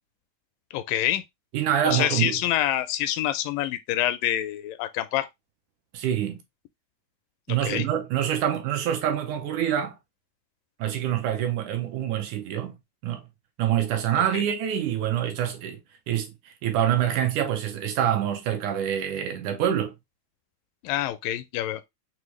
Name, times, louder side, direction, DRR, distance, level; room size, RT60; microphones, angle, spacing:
voice 1, 0.7-1.2 1.9-5.3 7.5-7.9 14.2-14.4 20.8-21.8, left 13 dB, 85° left, 2.2 m, -27 dB
voice 2, 1.5-2.4 5.9-6.4 7.5-10.0 10.8-12.8 13.0-13.3 13.6-15.8 16.1-20.0, right 10 dB, 75° right, 2.1 m, -26 dB
6.2 x 2.2 x 3.0 m
omnidirectional pair, 3.8 m